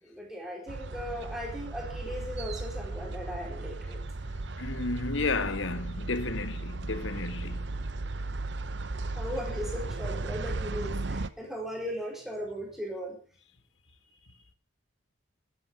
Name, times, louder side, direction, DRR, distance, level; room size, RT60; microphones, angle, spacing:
voice 1, 0.0-4.0 9.1-13.2, equal, ahead, 4.5 m, -37 dB
sound 1, 0.7-11.3, right 2 dB, 60° right, 0.8 m, -36 dB
voice 2, 4.6-7.8, left 3 dB, 75° left, 1.3 m, -32 dB
12.0 x 11.0 x 7.4 m
head